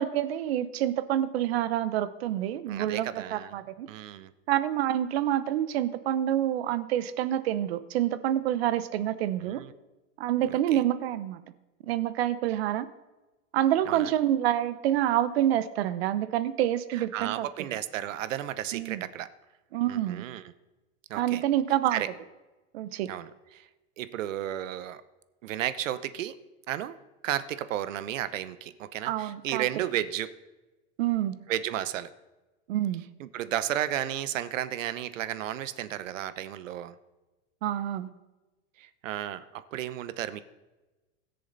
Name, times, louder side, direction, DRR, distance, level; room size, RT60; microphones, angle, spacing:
voice 1, 0.0-3.9 4.5-9.6 10.2-11.4 11.8-12.9 13.5-17.5 18.7-19.1 19.7-20.2 21.2-22.0 22.7-23.1 29.0-29.7 31.0-31.4 32.7-33.0 37.6-38.1, right 12 dB, 55° right, 14 dB, 0.8 m, -27 dB
voice 2, 2.7-3.6 3.9-4.3 9.4-9.7 10.5-10.8 13.9-14.1 16.9-19.3 19.9-20.5 21.1-21.4 21.9-22.1 23.1-23.7 24.0-25.0 25.4-26.4 26.7-27.0 27.2-30.3 31.5-32.1 33.2-37.0 38.8-40.4, right 12 dB, 85° right, 14 dB, 0.9 m, -33 dB
20.5 x 6.8 x 4.0 m, 1.1 s
supercardioid pair, 170°, 37 cm